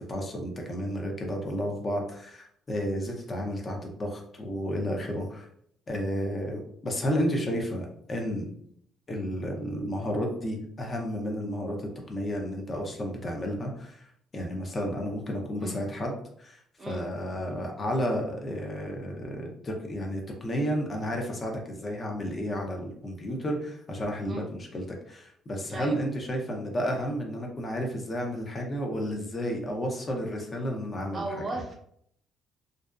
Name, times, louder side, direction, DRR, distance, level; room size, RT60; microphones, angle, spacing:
voice 1, 0.1-5.5 5.9-8.5 9.1-14.1 14.3-31.4, equal, 35° left, 1 dB, 0.6 m, -32 dB
voice 2, 31.1-31.8, right 2 dB, 35° right, 0 dB, 0.7 m, -35 dB
2.5 x 2.0 x 2.3 m, 0.67 s
cardioid pair, 95°, 0 cm